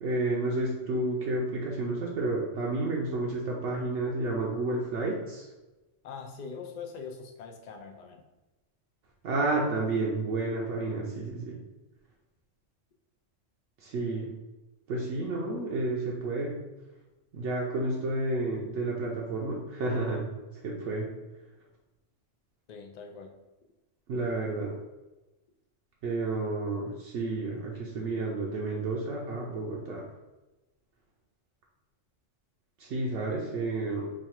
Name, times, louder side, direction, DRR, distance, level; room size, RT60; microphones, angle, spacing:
voice 1, 0.0-5.5 9.2-11.6 13.8-14.3 14.9-16.6 17.3-20.3 20.6-21.1 24.1-24.7 26.0-30.0 32.8-34.2, right 2 dB, 75° right, -3 dB, 0.9 m, -31 dB
voice 2, 6.0-8.2 22.7-23.4, left 5 dB, 75° left, 3 dB, 0.4 m, -42 dB
3.1 x 2.3 x 4.3 m, 1.1 s
omnidirectional pair, 1.3 m